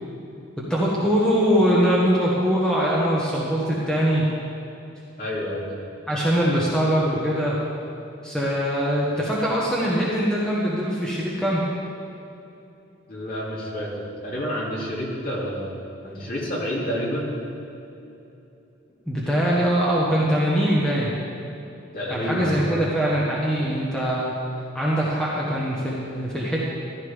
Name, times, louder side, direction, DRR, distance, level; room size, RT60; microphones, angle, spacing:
voice 1, 0.6-4.3 6.1-7.6 8.2-11.6 19.1-21.1 22.1-24.3 24.7-26.6, equal, 5° left, -7 dB, 1.4 m, -22 dB
voice 2, 5.2-5.8 13.1-17.3 21.9-22.8, equal, 45° left, -5 dB, 2.7 m, -29 dB
14.5 x 11.5 x 3.6 m, 2.8 s
head